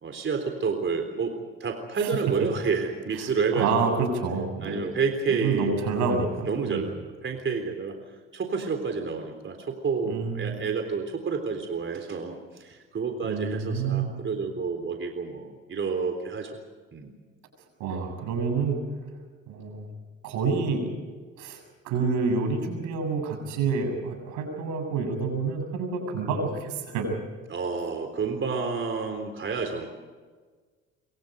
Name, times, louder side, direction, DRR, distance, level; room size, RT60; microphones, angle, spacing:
voice 1, 0.0-4.0 4.6-5.8 6.4-8.0 8.3-16.6 16.9-17.1 27.5-29.9, right 5 dB, 40° right, 5 dB, 3.8 m, -29 dB
voice 2, 3.5-4.9 5.3-6.8 10.1-10.6 13.2-14.1 17.8-18.8 19.5-19.9 20.2-20.9 21.4-27.2, right 4 dB, 80° right, 5 dB, 7.3 m, -28 dB
27.0 x 24.5 x 5.3 m, 1.4 s
supercardioid pair, 65°, 30 cm